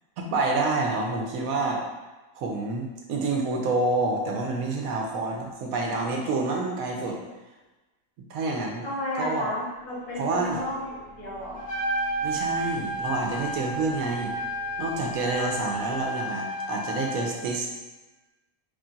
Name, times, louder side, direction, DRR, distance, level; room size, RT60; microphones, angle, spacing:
voice 1, 0.2-1.8 2.4-7.2 8.3-8.9 9.1-9.5 10.1-10.6 12.2-14.4 14.8-17.7, right 3 dB, 90° right, 0 dB, 1.1 m, -28 dB
voice 2, 8.8-11.6, left 1 dB, 80° left, -6 dB, 1.7 m, -32 dB
sound 1, 9.7-16.1, equal, 10° left, 0.6 m, -51 dB
Trumpet, 11.6-17.4, right 1 dB, 60° left, 1.2 m, -31 dB
3.5 x 2.4 x 3.9 m, 1.1 s
omnidirectional pair, 1.4 m